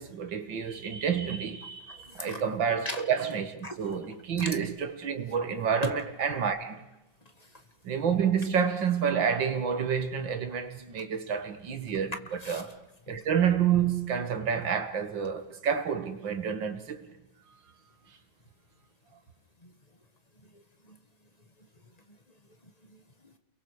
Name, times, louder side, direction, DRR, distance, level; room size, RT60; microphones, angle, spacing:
voice 1, 0.0-6.9 7.8-12.8 13.1-17.1, right 7 dB, 70° right, 2.3 m, -29 dB
voice 2, 1.9-2.4 2.8-3.0 3.6-3.7 4.4-4.5 5.8-5.9 7.4-7.5 12.4-12.6 13.1-13.2 19.6-19.7 20.5-21.0 22.6-23.3, left 2 dB, 20° left, 1.4 m, -39 dB
29.5 x 22.5 x 4.9 m
omnidirectional pair, 2.1 m